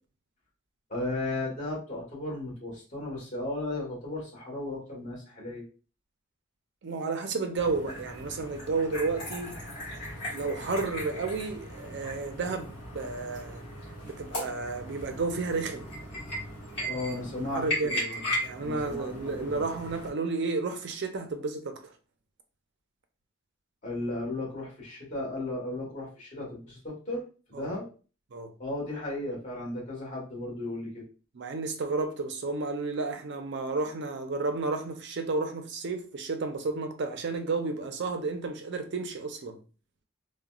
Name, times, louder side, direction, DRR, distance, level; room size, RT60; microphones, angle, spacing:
voice 1, 0.9-5.6 16.9-17.6 17.9-18.2 18.6-19.6 23.8-27.2 27.5-27.9 28.6-31.1, left 2 dB, 35° left, 1.3 m, -35 dB
voice 2, 6.8-9.5 10.3-13.6 14.0-15.9 17.4-18.0 18.4-21.9 27.5-27.7 28.3-28.5 31.3-39.6, right 3 dB, 55° right, 0.5 m, -32 dB
sound 1, 7.5-20.1, equal, 55° left, 1.4 m, -37 dB
3.8 x 2.2 x 2.3 m
head